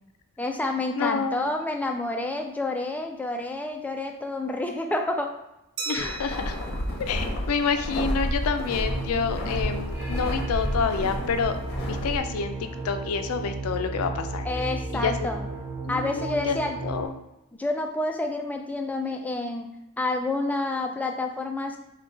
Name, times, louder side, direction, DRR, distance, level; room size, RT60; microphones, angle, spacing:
voice 1, 0.4-5.3 5.9-6.1 14.4-15.4 15.9-16.8 17.5-19.7 20.0-21.8, left 2 dB, 5° left, 3 dB, 0.3 m, -29 dB
voice 2, 1.0-1.5 5.9-6.6 7.0-11.6 11.8-15.3 15.8-16.6 16.8-17.1, left 5 dB, 85° left, 8 dB, 0.4 m, -28 dB
Glass, 5.8-8.2, right 5 dB, 55° right, 0.6 m, -39 dB
sound 1, 6.0-12.2, equal, 50° left, 0.8 m, -31 dB
sound 2, 8.6-17.1, right 2 dB, 10° right, 1.0 m, -34 dB
3.7 x 2.3 x 3.6 m, 0.89 s
head